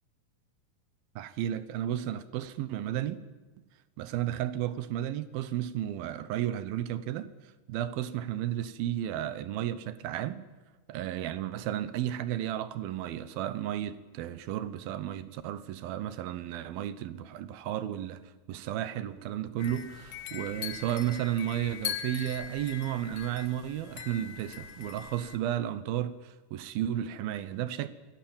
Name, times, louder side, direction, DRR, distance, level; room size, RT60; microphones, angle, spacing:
voice 1, 1.2-3.2 4.0-10.4 10.9-27.9, right 11 dB, 80° right, 2.8 m, -33 dB
sound 1, 19.6-25.4, left 8 dB, 55° left, 1.9 m, -41 dB
25.0 x 18.0 x 8.8 m
omnidirectional pair, 4.3 m